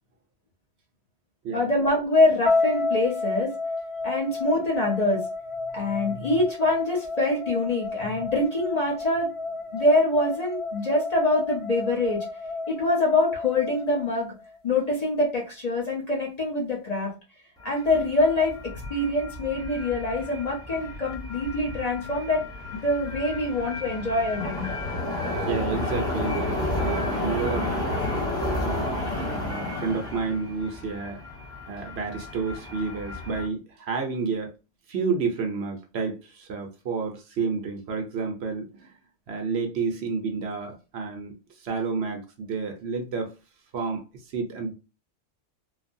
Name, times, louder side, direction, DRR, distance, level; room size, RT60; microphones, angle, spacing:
voice 1, 1.5-3.5 4.0-5.2 5.7-9.3 9.7-12.2 12.7-14.3 14.6-17.1 17.6-22.4 22.7-24.7, left 2 dB, 40° left, 0.9 m, -24 dB
sound 1, 2.4-14.6, left 3 dB, 60° left, 1.0 m, -31 dB
voice 2, 5.8-6.3 8.0-8.2 25.5-28.3 28.6-28.9 29.1-31.2 31.7-34.5 34.9-38.9 39.3-43.3 43.7-44.7, right 4 dB, 65° right, 0.8 m, -30 dB
sound 2, 17.6-33.5, left 1 dB, 5° left, 0.7 m, -32 dB
3.2 x 2.1 x 2.5 m
omnidirectional pair, 1.2 m